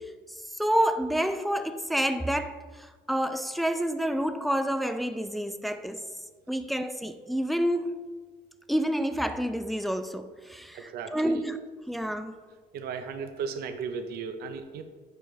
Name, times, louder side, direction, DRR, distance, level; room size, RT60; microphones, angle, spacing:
voice 1, 0.6-6.0 6.5-8.0 8.7-11.6 11.9-12.3, equal, ahead, 0.3 m, -28 dB
voice 2, 10.7-11.4 12.7-14.8, right 6 dB, 70° right, 0.6 m, -36 dB
7.8 x 4.9 x 3.1 m
cardioid pair, 110°, 17 cm